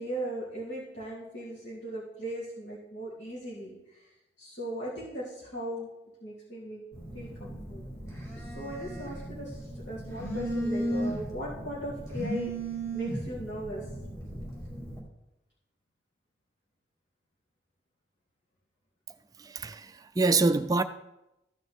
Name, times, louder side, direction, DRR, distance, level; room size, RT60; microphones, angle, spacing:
voice 1, 0.0-4.1 4.4-5.9 6.2-6.8 7.1-7.9 8.4-12.5 12.9-13.9, right 1 dB, 75° left, 3.3 m, -38 dB
Telephone, 6.9-15.0, right 1 dB, 15° left, 2.6 m, -36 dB
voice 2, 19.4-20.8, right 3 dB, 20° right, 0.3 m, -26 dB
15.0 x 6.3 x 3.6 m
head